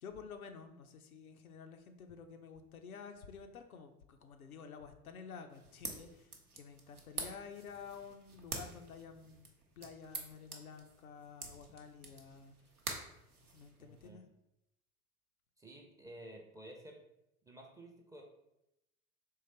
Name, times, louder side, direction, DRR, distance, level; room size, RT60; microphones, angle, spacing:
voice 1, 0.0-9.5 9.8-12.6 13.5-14.2, left 6 dB, 80° left, 6 dB, 0.6 m, -51 dB
sound 1, 5.5-14.1, right 3 dB, 90° right, 0.7 m, -48 dB
voice 2, 13.8-14.2 15.6-17.0 17.4-18.2, right 1 dB, 10° right, 1 dB, 0.5 m, -52 dB
3.8 x 3.0 x 4.1 m, 0.86 s
figure-of-eight pair, 75°, 43 cm